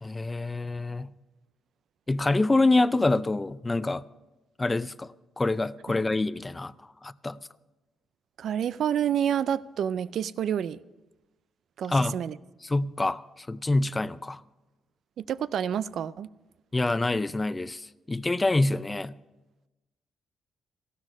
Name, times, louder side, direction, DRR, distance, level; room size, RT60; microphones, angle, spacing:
voice 1, 0.0-1.1 2.1-4.0 4.6-6.7 7.0-7.4 11.9-12.2 12.6-14.4 16.7-19.2, left 2 dB, 20° left, 0.4 m, -26 dB
voice 2, 8.4-10.8 11.8-12.4 15.2-16.3, right 9 dB, 65° right, 0.3 m, -28 dB
14.0 x 12.5 x 5.3 m
cardioid pair, 90°, 0 cm